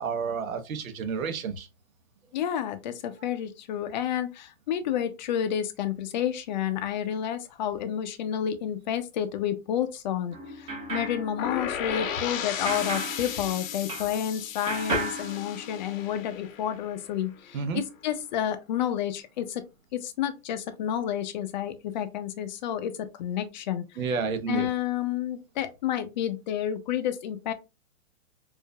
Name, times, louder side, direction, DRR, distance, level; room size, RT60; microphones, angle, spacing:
voice 1, 0.0-1.7 17.5-17.8 24.0-24.7, right 5 dB, 85° right, 1.0 m, -30 dB
voice 2, 2.3-19.6 19.9-24.0 24.5-27.5, left 10 dB, 35° left, 0.5 m, -30 dB
sound 1, 10.3-14.3 14.7-16.2, right 1 dB, 15° right, 0.7 m, -35 dB
sound 2, 11.4-17.2, left 8 dB, 75° left, 0.8 m, -35 dB
4.7 x 2.5 x 2.2 m
hypercardioid pair, 155°, 40 cm